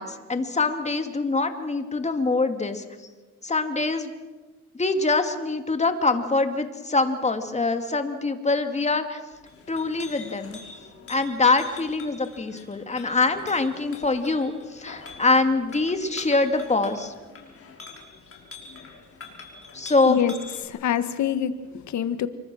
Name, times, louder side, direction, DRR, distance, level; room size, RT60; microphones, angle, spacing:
voice 1, 0.0-2.8 3.4-4.1 4.7-9.2 9.7-10.6 11.1-17.1 19.7-20.2, left 3 dB, 20° left, 7 dB, 2.5 m, -24 dB
Chink clink, 9.3-20.6, left 4 dB, 50° left, 5.6 m, -45 dB
voice 2, 20.6-22.3, left 9 dB, 70° left, 12 dB, 1.5 m, -25 dB
26.5 x 24.0 x 6.4 m, 1.3 s
cardioid pair, 90°, 30 cm